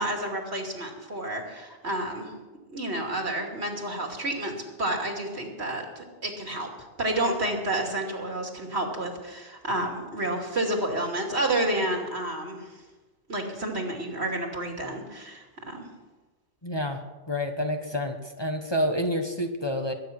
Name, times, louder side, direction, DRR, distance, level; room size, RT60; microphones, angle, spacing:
voice 1, 0.0-2.3 2.7-6.7 7.0-12.7 13.3-15.9, right 1 dB, 70° right, 2 dB, 2.9 m, -30 dB
voice 2, 16.6-19.9, equal, 25° left, 4 dB, 1.2 m, -29 dB
21.5 x 9.7 x 6.0 m, 1.2 s
omnidirectional pair, 1.1 m